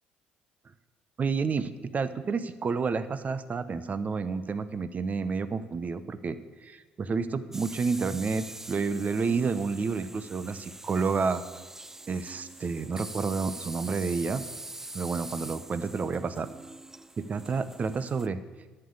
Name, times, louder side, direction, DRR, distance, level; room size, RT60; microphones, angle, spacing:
voice 1, 1.2-11.4 12.1-14.5 14.9-16.5 17.2-18.4, right 5 dB, 40° right, 14 dB, 0.8 m, -30 dB
sound 1, 7.5-18.3, right 2 dB, 10° right, 0.4 m, -44 dB
11.0 x 6.8 x 8.7 m, 1.3 s
hypercardioid pair, 55°, 4 cm